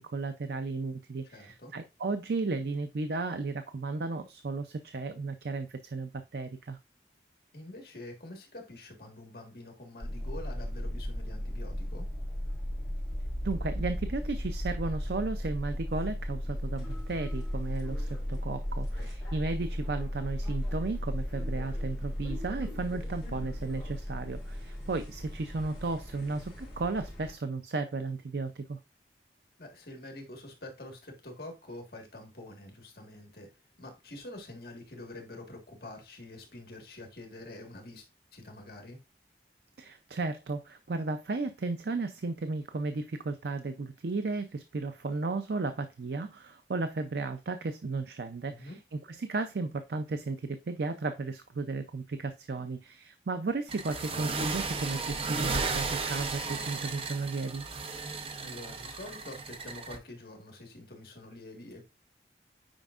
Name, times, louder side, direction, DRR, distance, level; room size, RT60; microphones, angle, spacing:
voice 1, 0.0-6.8 13.4-28.8 39.8-57.6, right 3 dB, 70° right, 0.5 m, -34 dB
voice 2, 1.2-1.7 7.5-12.1 18.7-19.1 29.6-33.5 33.8-38.1 38.3-39.0 48.5-48.8 58.4-61.8, left 1 dB, 60° left, 1.6 m, -46 dB
sound 1, 10.0-27.3, equal, ahead, 4.2 m, -36 dB
sound 2, 53.7-60.0, right 4 dB, 30° right, 0.7 m, -35 dB
8.9 x 5.1 x 2.4 m
head